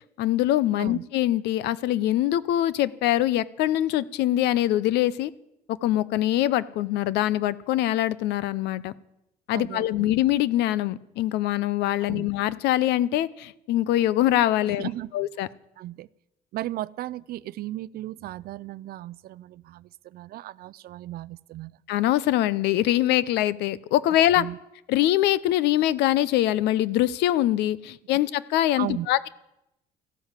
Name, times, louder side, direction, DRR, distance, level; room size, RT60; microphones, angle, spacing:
voice 1, 0.2-5.3 5.8-8.9 9.5-14.9 15.1-15.5 21.9-24.5 24.9-29.3, left 13 dB, 85° left, 19 dB, 0.7 m, -23 dB
voice 2, 9.5-10.2 12.0-12.3 14.8-15.1 15.8-16.1 16.5-21.7 24.4-24.6 28.8-29.1, right 15 dB, 65° right, 20 dB, 0.5 m, -36 dB
14.0 x 12.0 x 8.2 m, 0.87 s
cardioid pair, 110°, 17 cm